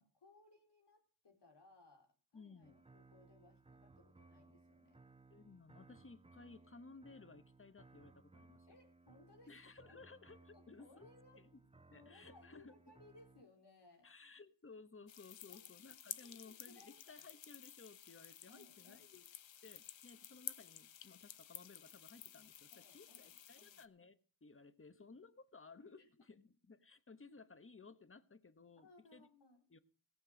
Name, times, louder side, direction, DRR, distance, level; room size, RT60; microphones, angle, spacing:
voice 1, 0.0-5.0 8.7-10.0 10.5-11.4 11.9-14.1 15.5-15.7 16.2-17.2 18.5-19.0 20.1-20.2 22.7-23.9 26.0-26.1 28.8-29.6, left 2 dB, 65° left, 3 dB, 4.0 m, -65 dB
voice 2, 2.3-2.8 5.3-8.7 9.5-11.1 11.4-11.6 11.9-12.7 14.0-19.2 19.6-29.3 29.7-29.8, left 4 dB, 30° left, 14 dB, 1.1 m, -58 dB
sound 1, 2.6-13.4, right 3 dB, 15° right, 0.8 m, -64 dB
sound 2, 15.1-23.9, left 10 dB, 80° left, 0.8 m, -53 dB
17.0 x 7.1 x 6.3 m, 0.39 s
cardioid pair, 55°, 44 cm